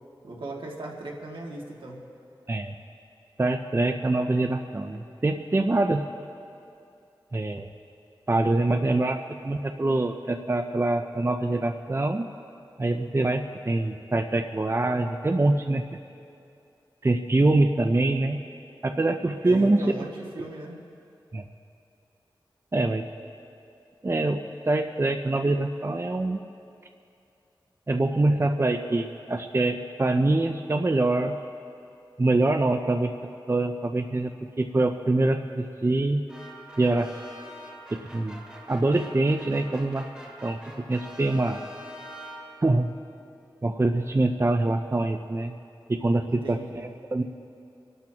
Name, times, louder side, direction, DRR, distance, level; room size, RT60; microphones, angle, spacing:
voice 1, 0.2-2.0 19.5-20.8 46.3-46.8, right 1 dB, 80° right, -2 dB, 2.1 m, -38 dB
voice 2, 3.4-6.0 7.3-7.7 8.3-12.3 12.8-16.0 17.0-18.4 18.8-19.8 21.3-21.4 22.7-23.0 24.0-24.4 24.7-26.4 27.9-31.3 32.2-33.1 33.5-34.3 34.6-36.2 36.8-37.1 37.9-38.4 38.7-40.1 40.4-40.6 40.9-41.6 42.6-42.9 43.6-45.6 45.9-47.2, right 2 dB, 30° right, 6 dB, 0.6 m, -24 dB
sound 1, 36.3-42.8, equal, 10° right, 2.5 m, -44 dB
30.0 x 12.0 x 2.9 m, 2.5 s
wide cardioid pair, 70°, 9 cm